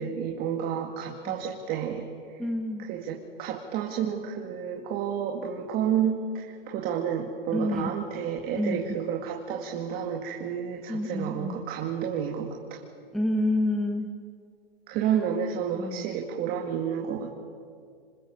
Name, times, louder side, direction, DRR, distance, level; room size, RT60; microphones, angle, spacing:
voice 1, 0.0-2.4 2.9-12.8 14.9-17.3, right 8 dB, 30° right, 2 dB, 2.2 m, -30 dB
voice 2, 2.4-2.9 7.5-7.9 8.5-8.8 10.9-11.6 13.1-14.1 15.8-16.2, left 1 dB, ahead, 3 dB, 1.1 m, -28 dB
26.5 x 26.0 x 7.3 m, 2.2 s
hypercardioid pair, 150°, 30 cm